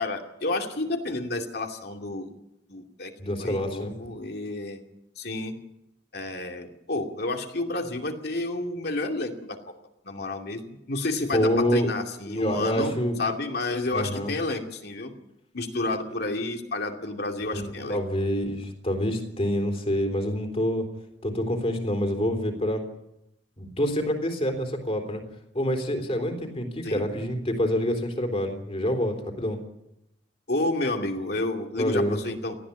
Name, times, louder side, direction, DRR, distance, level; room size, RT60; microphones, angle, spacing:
voice 1, 0.0-2.3 2.7-3.1 3.4-4.8 5.2-5.5 6.1-9.6 10.0-12.9 13.2-15.1 15.5-18.0 26.8-27.0 30.5-32.6, left 2 dB, 60° left, 3 dB, 2.6 m, -30 dB
voice 2, 3.2-3.9 11.3-11.9 12.3-13.1 13.9-14.3 17.4-20.9 21.2-22.9 23.6-25.2 25.5-29.6 31.8-32.2, equal, 35° left, 6 dB, 3.6 m, -27 dB
19.0 x 14.5 x 9.9 m, 0.86 s
head